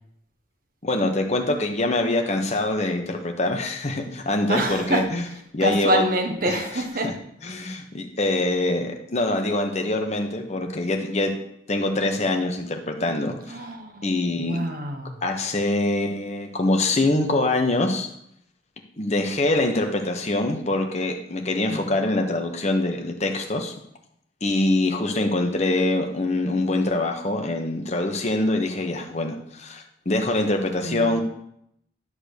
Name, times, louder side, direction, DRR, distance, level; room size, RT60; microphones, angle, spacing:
voice 1, 0.8-5.2 5.5-6.0 6.4-6.6 7.0-7.1 7.4-11.3 11.7-13.6 14.0-14.6 15.2-18.1 19.0-23.7 24.4-31.2, left 2 dB, 35° left, 3 dB, 1.1 m, -24 dB
voice 2, 4.5-5.0 5.6-7.1 13.5-15.1 21.7-22.0 30.8-31.2, right 1 dB, 50° right, 4 dB, 1.2 m, -26 dB
10.5 x 3.8 x 6.6 m, 0.72 s
head